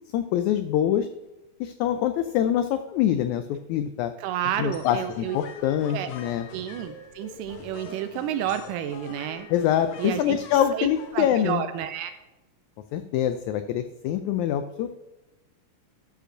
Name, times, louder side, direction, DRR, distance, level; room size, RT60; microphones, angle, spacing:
voice 1, 0.1-1.1 1.6-4.1 4.6-6.4 9.5-11.6 12.9-15.0, left 10 dB, 85° left, 9 dB, 1.7 m, -25 dB
voice 2, 4.2-5.4 5.9-6.1 6.5-9.5 10.0-12.1, right 10 dB, 85° right, 9 dB, 2.1 m, -31 dB
sound 1, 4.4-11.2, left 5 dB, 65° left, 2.2 m, -44 dB
13.5 x 5.1 x 6.3 m, 1.0 s
omnidirectional pair, 3.8 m